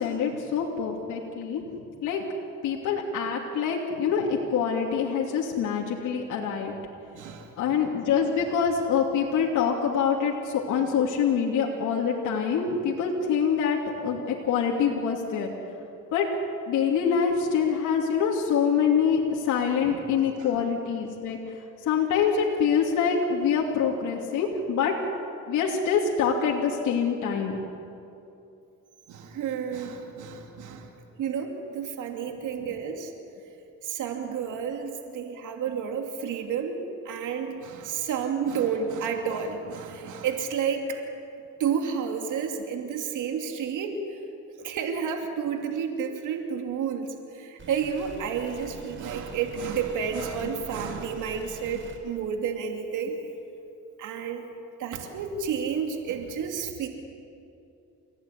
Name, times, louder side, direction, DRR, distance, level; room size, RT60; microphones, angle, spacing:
voice 1, 0.0-2.2 2.6-6.8 7.6-15.5 16.1-16.3 16.7-24.9 25.5-27.6 30.3-30.4 32.6-32.7 50.4-50.5, left 6 dB, 85° left, -1 dB, 2.9 m, -25 dB
voice 2, 7.1-7.5 19.8-20.0 20.4-20.5 29.1-30.9 31.2-33.1 33.8-41.0 41.6-44.2 44.6-53.2 54.0-54.5 54.8-56.9, right 7 dB, 85° right, 3 dB, 2.7 m, -31 dB
sound 1, 47.6-52.0, right 2 dB, 40° right, 4.5 m, -45 dB
29.0 x 17.0 x 9.9 m, 2.7 s
cardioid pair, 90°, 30 cm